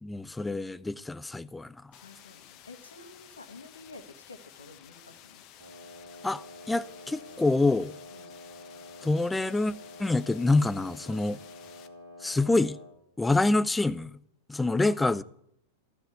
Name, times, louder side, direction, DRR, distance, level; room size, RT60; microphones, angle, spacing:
voice 1, 0.0-1.7 6.2-7.9 9.0-9.7 10.0-11.4 12.2-12.8 13.2-14.2 14.5-15.2, left 2 dB, 10° left, 0.5 m, -26 dB
voice 2, 1.9-5.4 8.1-8.3 14.8-15.2, left 3 dB, 75° left, 1.7 m, -50 dB
sound 1, 1.9-11.9, left 11 dB, 40° left, 1.3 m, -53 dB
Wind instrument woodwind instrument, 5.6-13.0, left 2 dB, 70° right, 3.4 m, -48 dB
15.0 x 11.5 x 8.0 m
figure-of-eight pair, 90°, 0 cm